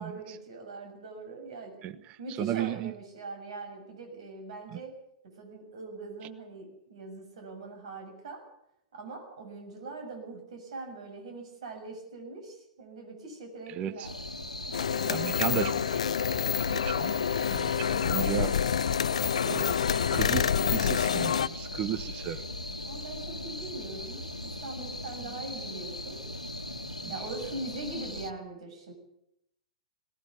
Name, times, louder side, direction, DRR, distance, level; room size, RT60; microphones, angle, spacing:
voice 1, 0.0-1.9 2.2-8.5 8.9-14.2 14.6-14.8 22.9-26.2 27.1-28.9, right 3 dB, 60° right, 5 dB, 6.9 m, -42 dB
voice 2, 1.8-2.9 4.7-4.8 13.7-14.1 15.1-16.1 16.7-17.1 17.5-18.6 19.4-19.8 20.1-22.4, right 11 dB, 30° right, 14 dB, 1.1 m, -34 dB
sound 1, 14.0-28.3, left 1 dB, 90° left, 1.6 m, -39 dB
sound 2, 14.7-21.5, left 8 dB, 65° left, 0.7 m, -27 dB
19.0 x 18.5 x 8.3 m, 0.79 s
figure-of-eight pair, 105°, 4 cm